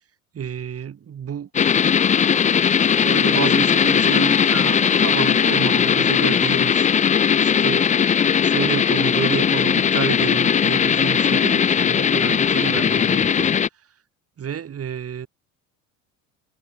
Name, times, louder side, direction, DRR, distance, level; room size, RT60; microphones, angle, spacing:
voice 1, 0.3-1.5 3.0-6.9 7.4-8.1 8.4-13.5 14.4-15.3, right 8 dB, 30° right, 3.9 m, -30 dB
sound 1, 1.5-13.7, left 7 dB, 15° left, 0.6 m, -18 dB
figure-of-eight pair, 65°, 44 cm